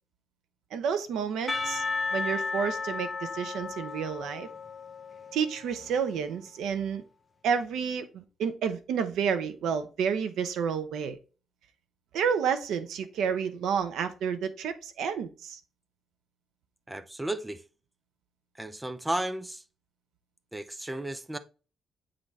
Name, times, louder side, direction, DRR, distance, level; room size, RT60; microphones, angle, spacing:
voice 1, 0.7-1.8 2.1-4.5 5.3-7.0 7.4-11.2 12.1-15.6, right 7 dB, 90° right, 0.8 m, -30 dB
Percussion, 1.5-6.3, left 4 dB, 20° left, 1.1 m, -34 dB
voice 2, 16.9-17.6 18.6-19.6 20.5-21.4, right 1 dB, 10° right, 0.5 m, -33 dB
8.7 x 3.9 x 3.3 m
cardioid pair, 125°, 0 cm